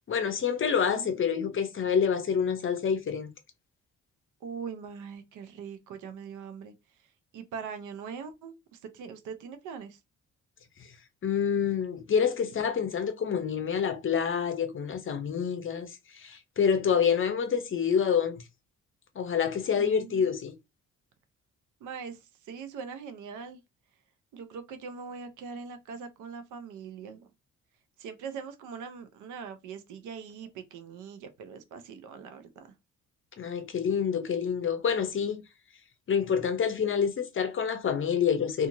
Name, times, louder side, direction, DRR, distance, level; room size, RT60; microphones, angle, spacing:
voice 1, 0.1-3.3 11.2-18.4 19.2-20.5 33.4-35.4 36.1-38.7, left 7 dB, 45° left, 0.7 m, -27 dB
voice 2, 0.9-1.6 4.4-6.7 7.3-10.0 19.8-20.3 21.8-23.6 24.3-27.3 28.0-32.7, right 6 dB, 85° right, 0.7 m, -42 dB
2.8 x 2.5 x 2.6 m
cardioid pair, 90°, 30 cm